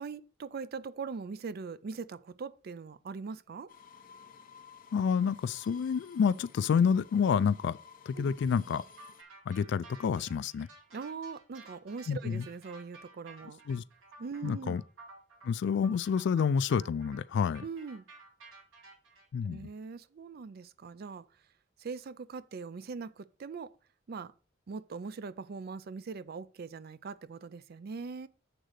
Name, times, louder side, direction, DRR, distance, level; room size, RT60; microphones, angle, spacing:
voice 1, 0.0-3.7 8.2-8.3 10.9-13.6 14.2-14.8 17.6-18.1 19.4-21.3 21.8-23.7 24.1-24.3 24.7-28.3, right 5 dB, 50° right, 0.4 m, -41 dB
sound 1, 3.7-9.2, left 6 dB, 45° left, 0.8 m, -55 dB
voice 2, 4.9-7.8 8.1-8.8 9.5-10.7 12.1-12.4 13.7-13.8 14.4-14.8 15.4-17.6 19.3-19.7, left 6 dB, 60° left, 0.3 m, -28 dB
sound 2, 9.0-19.2, right 2 dB, 90° right, 2.4 m, -54 dB
8.0 x 3.8 x 6.4 m
head